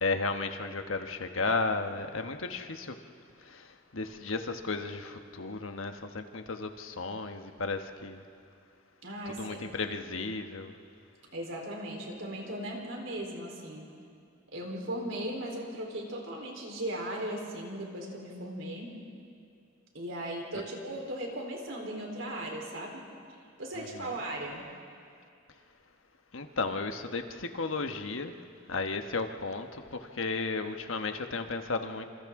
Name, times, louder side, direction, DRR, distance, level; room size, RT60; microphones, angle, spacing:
voice 1, 0.0-3.0 3.4-8.2 9.4-10.7 26.3-28.3 28.7-32.1, left 3 dB, 80° left, 6 dB, 1.2 m, -34 dB
voice 2, 9.0-9.6 11.3-13.9 14.5-19.0 19.9-24.7, right 1 dB, 70° right, 0 dB, 3.9 m, -37 dB
28.0 x 27.0 x 3.7 m, 2.4 s
head